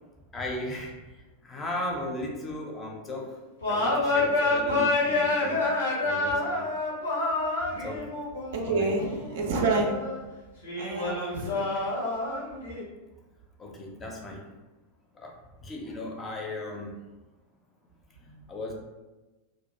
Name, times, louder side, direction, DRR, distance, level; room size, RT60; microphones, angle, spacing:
voice 1, 0.3-1.0 1.4-3.4 3.7-5.7 6.0-6.7 7.8-8.1 8.6-9.0 11.7-11.9 13.6-14.5 15.1-17.0 18.2-18.7, left 1 dB, 20° left, 0 dB, 0.5 m, -37 dB
sound 1, 3.6-10.2 10.6-12.8, left 2 dB, 80° left, 0.7 m, -28 dB
voice 2, 8.5-10.0 10.8-11.7, right 3 dB, 55° right, 1 dB, 0.4 m, -28 dB
2.2 x 2.1 x 2.9 m, 1.1 s
figure-of-eight pair, 90°, 0 cm